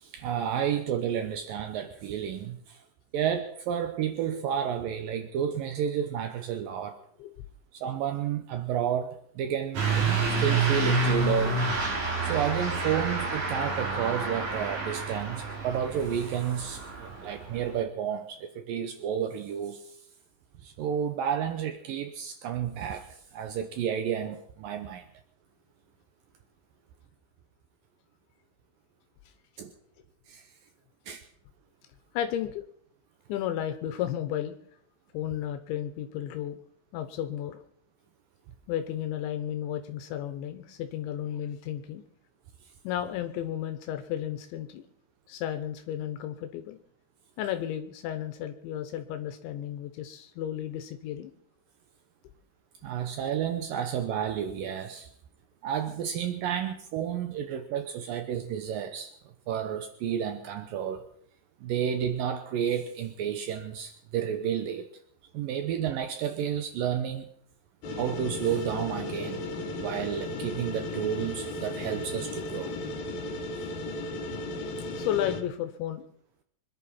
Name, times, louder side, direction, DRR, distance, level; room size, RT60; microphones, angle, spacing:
voice 1, 0.0-2.8 3.1-7.0 7.7-11.6 12.2-19.8 20.6-25.0 29.6-29.7 30.3-30.4 31.1-31.2 52.8-55.1 55.6-59.1 59.5-61.0 61.6-64.9 65.3-67.3 67.9-69.4 69.7-72.8, right 9 dB, 90° right, 8 dB, 1.9 m, -31 dB
Truck / Accelerating revving vroom, 9.7-17.7, right 3 dB, 45° right, 3.6 m, -29 dB
voice 2, 32.1-32.6 33.3-34.5 35.1-36.6 36.9-37.6 38.7-42.0 42.8-44.9 45.3-46.8 47.4-51.3 74.9-76.1, left 11 dB, 80° left, 8 dB, 3.2 m, -33 dB
sound 1, 67.8-75.4, left 1 dB, 60° left, 2.8 m, -35 dB
25.5 x 11.0 x 4.3 m, 0.64 s
omnidirectional pair, 5.4 m